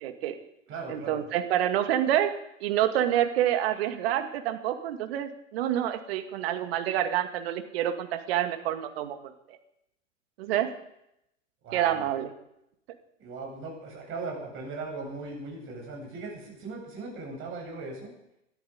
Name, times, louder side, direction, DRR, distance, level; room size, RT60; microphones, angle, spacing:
voice 1, 0.0-0.4 0.9-2.4 2.6-9.2 10.4-10.7 11.7-12.3, right 11 dB, 50° right, 8 dB, 2.1 m, -27 dB
voice 2, 0.7-1.2 11.6-12.1 13.2-18.1, right 3 dB, 30° right, 0 dB, 7.9 m, -38 dB
21.0 x 13.0 x 5.2 m, 0.82 s
figure-of-eight pair, 105°, 39 cm